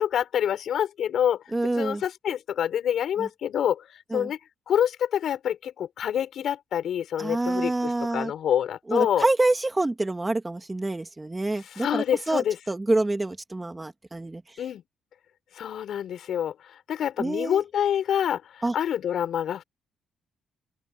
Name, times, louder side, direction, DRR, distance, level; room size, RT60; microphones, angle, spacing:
voice 1, 0.0-1.4 1.8-3.9 4.1-4.4 4.7-9.3 11.6-12.6 14.6-14.8 15.6-19.6, left 9 dB, 65° left, 5.8 m, -27 dB
voice 2, 1.5-2.0 3.2-3.3 4.1-4.3 7.2-8.3 8.9-14.4 17.2-17.6 18.6-18.7, right 2 dB, 15° right, 2.3 m, -27 dB
open air
cardioid pair, 90°, 0 cm